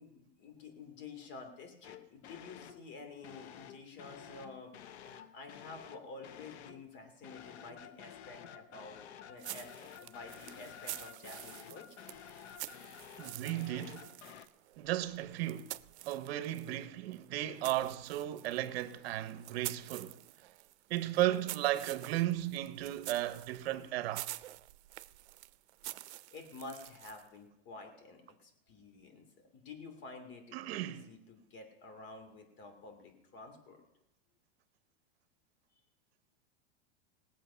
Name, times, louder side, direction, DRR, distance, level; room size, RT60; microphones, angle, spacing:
voice 1, 0.0-4.7 5.0-12.1 26.1-33.8, left 3 dB, 35° left, 2.8 m, -50 dB
sound 1, 1.8-2.9 3.2-6.9 7.2-14.5, left 9 dB, 80° left, 1.0 m, -52 dB
sound 2, 9.4-16.8 17.1-27.4, right 16 dB, 90° right, 0.6 m, -48 dB
voice 2, 13.2-14.1 14.8-15.8 16.0-20.2 20.9-24.3 30.5-31.1, right 14 dB, 65° right, 1.0 m, -35 dB
19.5 x 7.5 x 5.6 m
supercardioid pair, 150°, 33 cm